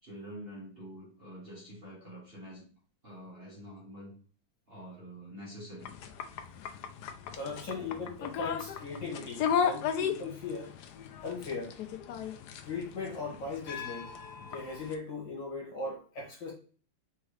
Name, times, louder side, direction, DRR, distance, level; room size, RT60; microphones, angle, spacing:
voice 1, 0.0-2.6 3.0-4.1 4.7-5.9, equal, 30° right, 1.6 m, -46 dB
sound 1, 5.8-14.9, left 7 dB, 90° left, 0.8 m, -36 dB
voice 2, 7.3-10.7 11.2-11.7 12.6-14.1 14.4-16.5, left 4 dB, 60° left, 2.2 m, -38 dB
4.3 x 3.6 x 3.2 m
omnidirectional pair, 2.3 m